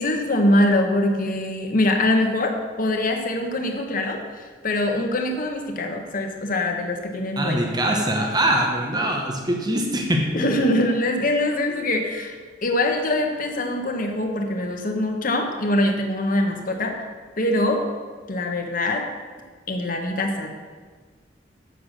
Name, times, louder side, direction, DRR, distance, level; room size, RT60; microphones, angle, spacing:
voice 1, 0.0-7.6 10.3-12.4 12.6-17.1 17.4-17.9 18.3-19.1 19.7-20.5, left 1 dB, 45° left, 3 dB, 1.2 m, -23 dB
voice 2, 7.4-10.3, right 1 dB, 20° right, 0 dB, 1.1 m, -23 dB
8.1 x 6.8 x 6.5 m, 1.5 s
head